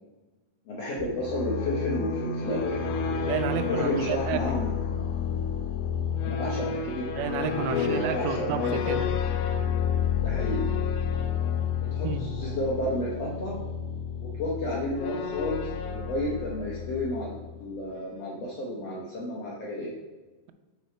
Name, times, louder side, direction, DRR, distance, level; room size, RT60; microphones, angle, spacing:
voice 1, 0.7-2.8 3.7-4.7 6.2-7.1 7.7-9.1 10.2-10.7 11.9-13.6 14.2-19.9, left 1 dB, 70° left, -4 dB, 1.5 m, -31 dB
sound 1, 1.0-17.6, left 6 dB, 90° left, 2.6 m, -30 dB
voice 2, 3.2-4.4 7.1-9.1 12.0-12.2, right 8 dB, 85° right, 9 dB, 2.5 m, -31 dB
9.2 x 4.6 x 4.4 m, 1.2 s
omnidirectional pair, 4.4 m